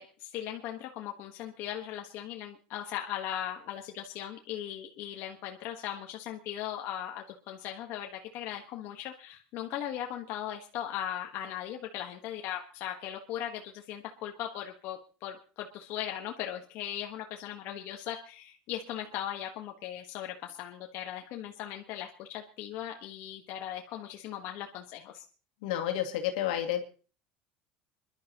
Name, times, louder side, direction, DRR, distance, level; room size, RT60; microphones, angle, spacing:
voice 1, 0.0-25.2, left 11 dB, 65° left, 2 dB, 1.4 m, -38 dB
voice 2, 25.6-26.8, left 11 dB, 85° left, 3 dB, 2.2 m, -30 dB
26.0 x 11.5 x 3.0 m, 0.37 s
supercardioid pair, 100°, 4 cm